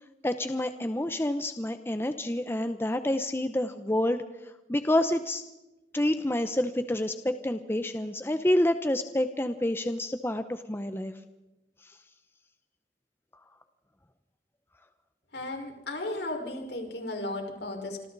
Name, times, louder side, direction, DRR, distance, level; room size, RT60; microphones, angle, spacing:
voice 1, 0.2-4.2 4.7-5.4 5.9-11.1, left 1 dB, 15° left, 9 dB, 0.8 m, -28 dB
voice 2, 15.3-18.1, left 2 dB, 70° left, 2 dB, 5.1 m, -35 dB
27.5 x 26.0 x 4.1 m, 1.0 s
head